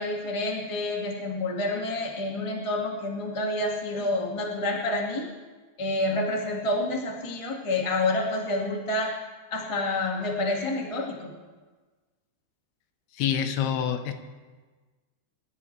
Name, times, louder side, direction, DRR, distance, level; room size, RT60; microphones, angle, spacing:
voice 1, 0.0-5.3 5.8-9.1 9.5-11.3, left 2 dB, 35° left, -1 dB, 0.5 m, -28 dB
voice 2, 13.1-14.1, left 9 dB, 85° left, 8 dB, 2.9 m, -26 dB
25.0 x 12.5 x 3.3 m, 1.3 s
omnidirectional pair, 4.5 m